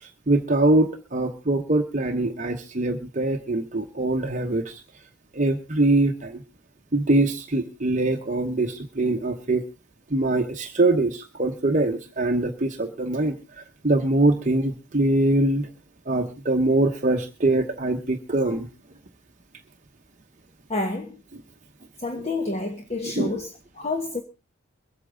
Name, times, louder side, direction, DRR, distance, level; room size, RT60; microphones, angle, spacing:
voice 1, 0.0-4.8 5.3-6.4 6.9-9.6 10.1-13.4 13.8-15.7 16.1-18.7 22.1-22.2 23.2-23.4, right 2 dB, 35° right, 3 dB, 0.9 m, -23 dB
voice 2, 20.7-21.2 22.0-24.2, left 2 dB, 30° left, 5 dB, 1.2 m, -29 dB
23.5 x 8.4 x 3.8 m, 0.29 s
head